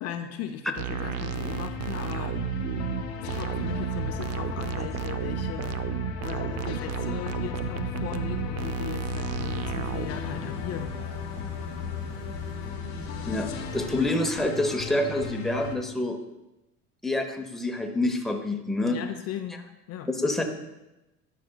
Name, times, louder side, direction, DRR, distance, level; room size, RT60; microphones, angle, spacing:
voice 1, 0.0-2.4 3.2-5.8 6.2-11.1 18.9-19.6 19.9-20.1, left 9 dB, 50° left, 6 dB, 0.6 m, -38 dB
sound 1, 0.8-10.1, right 8 dB, 55° right, 0.5 m, -32 dB
sound 2, 0.9-15.8, left 7 dB, 85° left, 1.0 m, -36 dB
sound 3, 9.2-14.2, right 1 dB, 80° right, 1.1 m, -41 dB
voice 2, 13.3-16.2 17.0-19.0 20.1-20.4, left 2 dB, ahead, 3 dB, 0.7 m, -27 dB
11.0 x 5.1 x 2.2 m, 0.97 s
supercardioid pair, 100°, 32 cm